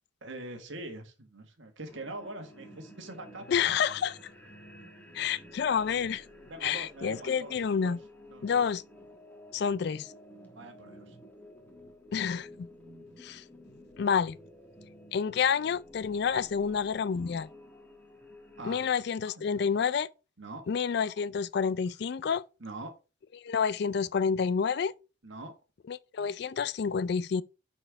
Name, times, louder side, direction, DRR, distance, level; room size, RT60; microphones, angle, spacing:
voice 1, 0.2-3.7 6.5-8.0 8.3-8.7 10.5-11.2 18.6-18.9 19.3-19.8 20.4-20.7 22.6-22.9 25.2-25.5, right 2 dB, 70° right, 1.6 m, -43 dB
sound 1, 1.8-18.9, left 1 dB, 10° left, 1.2 m, -52 dB
voice 2, 3.5-4.2 5.1-6.2 6.6-8.0 8.4-8.8 9.5-10.1 12.1-12.7 13.2-13.4 14.0-14.4 15.1-17.5 18.6-20.1 20.7-22.4 23.4-24.9 25.9-27.4, left 6 dB, 55° left, 0.3 m, -29 dB
8.8 x 4.4 x 3.4 m
head